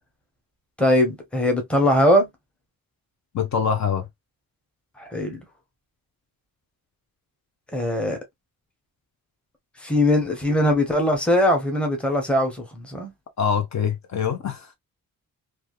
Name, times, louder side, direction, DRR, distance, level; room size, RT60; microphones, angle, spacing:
voice 1, 0.8-2.3 5.0-5.4 7.7-8.2 9.8-13.1, left 1 dB, 5° left, 0.8 m, -21 dB
voice 2, 3.3-4.1 13.4-14.8, left 7 dB, 50° left, 0.8 m, -24 dB
3.3 x 2.4 x 2.3 m
wide cardioid pair, 170°, 34 cm